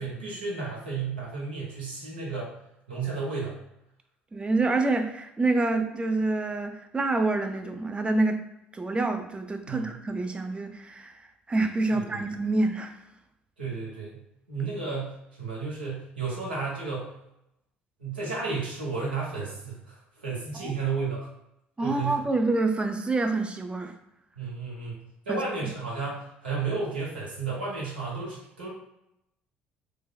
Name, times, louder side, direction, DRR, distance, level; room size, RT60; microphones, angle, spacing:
voice 1, 0.0-2.5 2.9-3.6 9.7-10.0 12.1-12.2 13.6-14.2 14.5-17.1 18.0-20.0 20.2-21.3 21.8-22.2 24.3-25.0 25.3-28.7, right 4 dB, 90° right, -5 dB, 0.9 m, -32 dB
voice 2, 4.3-8.4 8.7-11.2 11.5-13.0 20.5-20.7 21.8-23.9 25.3-25.7, right 2 dB, 20° right, 6 dB, 0.4 m, -27 dB
3.3 x 2.2 x 2.2 m, 0.84 s
hypercardioid pair, 55°, 5 cm